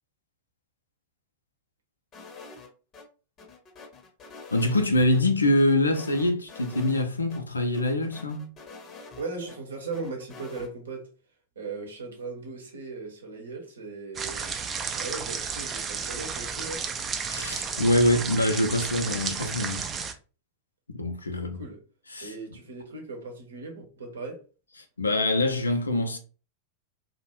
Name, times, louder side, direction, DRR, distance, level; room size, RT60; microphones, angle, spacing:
sound 1, 2.1-3.0 3.4-5.2 5.6-7.0 7.3-7.4 7.7-9.6 9.9-10.7, left 4 dB, 30° left, 0.7 m, -46 dB
voice 1, 4.5-8.5 17.3-19.9 20.9-21.6 22.1-22.3 25.0-26.2, left 1 dB, 75° left, 0.4 m, -24 dB
voice 2, 9.2-11.1 11.6-14.5 14.9-16.8 21.3-21.8 22.2-24.4, right 3 dB, 70° right, 0.7 m, -38 dB
sound 2, 14.1-20.1, right 6 dB, 25° right, 0.3 m, -33 dB
2.5 x 2.0 x 2.9 m
figure-of-eight pair, 90°, 0 cm